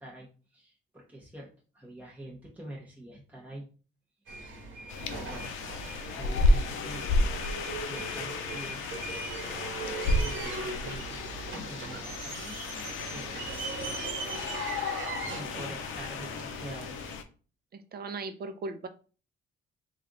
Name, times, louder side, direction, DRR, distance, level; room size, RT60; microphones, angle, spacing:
voice 1, 0.0-1.5 1.7-3.7 5.1-5.5 6.2-7.4 7.8-8.8 10.0-11.2 11.7-12.4 13.1-14.2 15.3-16.9, right 1 dB, 10° right, -3 dB, 1.1 m, -45 dB
sound 1, 4.3-17.2, right 3 dB, 75° right, 1.1 m, -39 dB
sound 2, 4.9-17.2, left 2 dB, 85° left, 0.5 m, -32 dB
voice 2, 15.3-15.7 17.7-18.9, right 3 dB, 50° right, 8 dB, 0.6 m, -39 dB
3.3 x 2.5 x 3.8 m, 0.37 s
cardioid pair, 90°, 20 cm